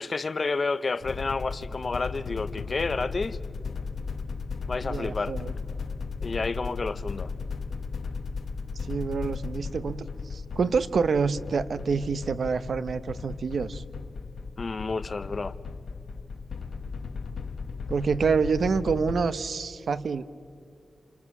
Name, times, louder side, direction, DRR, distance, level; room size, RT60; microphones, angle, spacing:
voice 1, 0.0-3.4 4.7-5.3 6.2-7.3 14.6-15.5, left 3 dB, 40° left, 0.6 m, -30 dB
sound 1, 1.0-19.3, left 4 dB, 70° left, 1.0 m, -36 dB
voice 2, 4.8-5.5 8.9-13.8 17.9-20.2, right 5 dB, 65° right, 0.8 m, -27 dB
29.5 x 28.5 x 6.1 m
wide cardioid pair, 160°, 0 cm